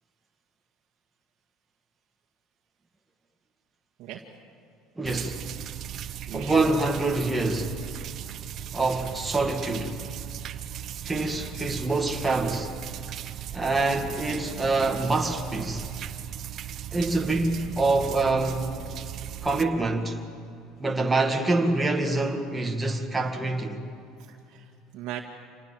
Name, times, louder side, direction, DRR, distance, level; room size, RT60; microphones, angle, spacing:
voice 1, 5.0-5.5 6.3-7.8 8.7-10.0 11.0-12.7 13.5-15.9 16.9-18.7 19.4-20.2 20.8-23.8, right 2 dB, 10° right, 2.1 m, -26 dB
sound 1, 5.0-19.6, right 10 dB, 45° right, 1.1 m, -37 dB
voice 2, 6.3-6.7 24.2-25.2, right 12 dB, 65° right, 1.9 m, -39 dB
27.0 x 19.0 x 7.8 m
cardioid pair, 125°, 0 cm